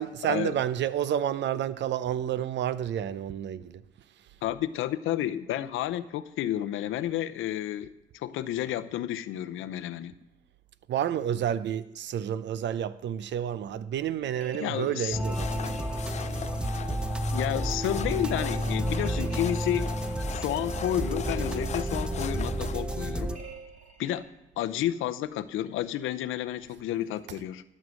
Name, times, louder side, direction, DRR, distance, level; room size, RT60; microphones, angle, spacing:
voice 1, 0.0-3.8 10.9-15.7 16.2-16.5, right 10 dB, 65° right, 0.6 m, -30 dB
voice 2, 4.4-10.1 14.6-15.2 17.3-19.9 20.3-23.3 24.0-24.3 24.6-27.6, left 12 dB, 85° left, 0.6 m, -31 dB
sound 1, 14.3-16.6 18.2-20.3 23.3-24.2, right 5 dB, 40° right, 2.9 m, -47 dB
sound 2, 15.1-23.4, right 1 dB, 5° right, 0.7 m, -31 dB
sound 3, 15.2-22.8, left 8 dB, 35° left, 0.4 m, -41 dB
12.5 x 6.5 x 6.4 m
cardioid pair, 90°, 20 cm